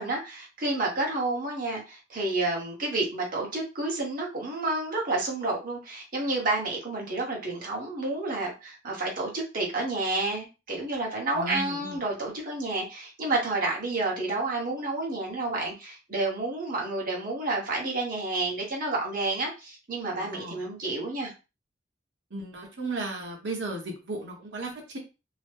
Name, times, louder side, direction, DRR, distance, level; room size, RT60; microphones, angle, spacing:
voice 1, 0.0-21.3, right 2 dB, 50° right, -2 dB, 1.2 m, -30 dB
voice 2, 11.3-12.0 20.2-20.6 22.3-25.0, right 2 dB, 75° right, 1 dB, 1.0 m, -35 dB
2.9 x 2.1 x 3.3 m, 0.29 s
head